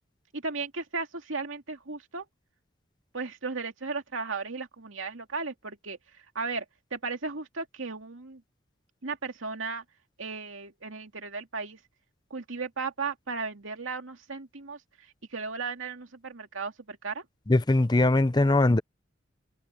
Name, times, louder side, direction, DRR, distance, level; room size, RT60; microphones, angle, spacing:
voice 1, 0.3-2.3 3.1-6.6 6.9-8.4 9.0-9.8 10.2-11.8 12.3-17.2, right 4 dB, 80° right, 2.3 m, -35 dB
voice 2, 17.5-18.8, left 2 dB, 20° left, 0.6 m, -21 dB
open air
head